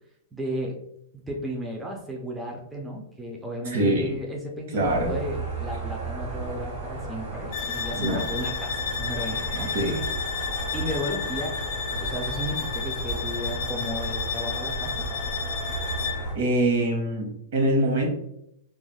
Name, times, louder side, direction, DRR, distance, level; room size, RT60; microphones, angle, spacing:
voice 1, 0.3-0.8 1.1-9.7 10.7-11.6 11.9-15.1, equal, 5° right, -1 dB, 0.3 m, -34 dB
voice 2, 3.6-4.2 4.7-5.2 8.0-8.3 9.7-10.0 16.3-18.1, right 1 dB, 60° right, 0 dB, 0.8 m, -24 dB
sound 1, 4.8-16.3, right 2 dB, 30° right, 1.4 m, -34 dB
sound 2, 7.5-16.3, left 7 dB, 45° left, 0.5 m, -32 dB
3.2 x 2.3 x 2.2 m, 0.77 s
supercardioid pair, 160°, 0 cm